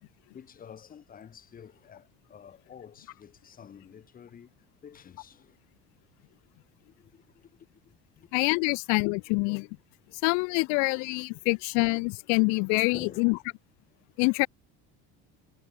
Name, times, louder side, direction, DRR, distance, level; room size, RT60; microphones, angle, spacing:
voice 1, 0.3-4.5 4.8-5.6 6.9-7.6 7.8-8.3 8.7-8.8 12.9-13.3, left 8 dB, 30° left, 5.9 m, -49 dB
voice 2, 8.3-9.7 10.2-13.3 14.2-14.5, left 36 dB, 75° left, 0.5 m, -25 dB
cardioid pair, 150°, 29 cm